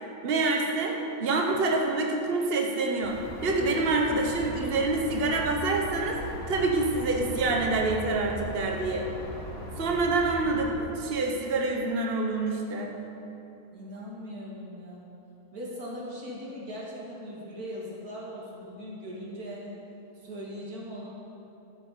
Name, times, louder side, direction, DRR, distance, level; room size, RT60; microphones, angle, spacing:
voice 1, 0.2-6.2 6.5-9.1 9.8-12.9, right 3 dB, 45° right, 1 dB, 1.3 m, -27 dB
sound 1, 3.0-10.7, equal, 45° left, 2.1 m, -38 dB
voice 2, 13.7-15.1 15.5-19.8 20.2-21.1, equal, 90° right, -4 dB, 2.7 m, -39 dB
13.5 x 7.1 x 6.8 m, 2.9 s
omnidirectional pair, 1.5 m